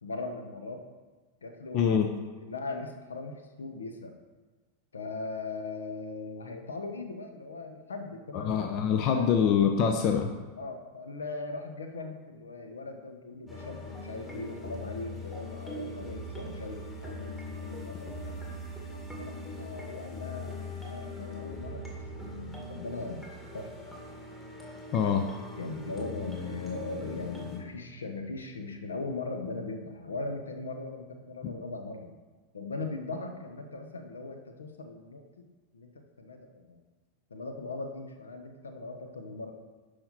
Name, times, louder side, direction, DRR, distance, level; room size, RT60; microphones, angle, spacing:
voice 1, 0.0-0.8 1.4-1.9 2.4-4.1 4.9-8.6 9.1-9.2 10.6-18.4 19.2-23.7 25.6-32.1 32.5-35.4 35.7-36.8 37.3-39.5, left 3 dB, 70° left, 5 dB, 1.0 m, -39 dB
voice 2, 1.7-2.1 8.3-10.3 24.9-25.3, left 7 dB, 40° left, 6 dB, 0.7 m, -25 dB
sound 1, 13.5-27.6, left 1 dB, 10° left, 2.2 m, -41 dB
11.5 x 5.1 x 4.2 m, 1.3 s
figure-of-eight pair, 90°, 0 cm